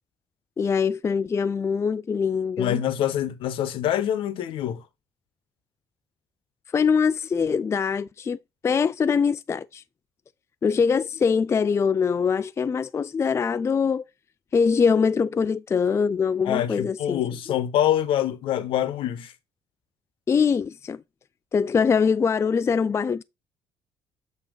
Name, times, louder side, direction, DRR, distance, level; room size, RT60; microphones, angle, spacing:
voice 1, 0.6-2.8 6.7-8.4 8.6-9.8 10.6-14.0 14.5-17.2 17.5-17.6 20.3-21.0 21.5-23.2, left 6 dB, 30° left, 0.3 m, -23 dB
voice 2, 2.6-4.8 16.4-19.3, left 11 dB, 70° left, 0.9 m, -25 dB
7.8 x 2.9 x 5.0 m
supercardioid pair, 65°, 9 cm